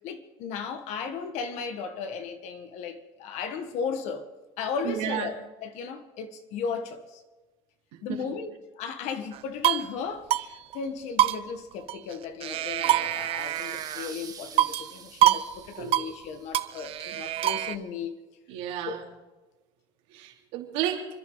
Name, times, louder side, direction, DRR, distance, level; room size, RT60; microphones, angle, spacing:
voice 1, 0.0-4.3 4.6-7.2 8.0-18.2 18.8-19.0, left 6 dB, 65° left, 1.6 m, -35 dB
voice 2, 4.8-5.3 8.1-8.2 15.8-16.0 17.1-17.3 18.5-19.0 20.1-21.1, right 11 dB, 75° right, 3.1 m, -32 dB
sound 1, 9.3-9.9 10.3-10.5 10.7-10.8 11.2-12.1 12.4-14.1 14.6-14.9 15.2-15.5 15.7-16.1 16.5-17.8, right 12 dB, 50° right, 0.7 m, -25 dB
sound 2, 13.3-16.8, right 6 dB, 30° right, 1.7 m, -47 dB
29.0 x 11.0 x 4.0 m
supercardioid pair, 115°, 12 cm